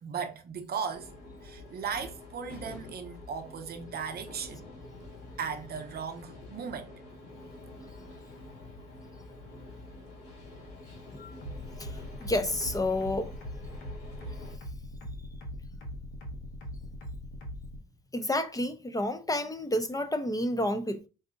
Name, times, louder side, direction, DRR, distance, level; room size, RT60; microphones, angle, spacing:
voice 1, 0.0-1.1 1.4-4.7 5.4-6.9, right 6 dB, 55° right, 0.6 m, -37 dB
sound 1, 0.9-14.6, left 2 dB, 60° left, 2.2 m, -47 dB
sound 2, 11.4-17.8, equal, 85° left, 1.1 m, -41 dB
voice 2, 11.8-13.3 18.1-21.1, left 1 dB, 20° left, 0.5 m, -30 dB
4.7 x 2.6 x 2.5 m
cardioid pair, 90°, 20 cm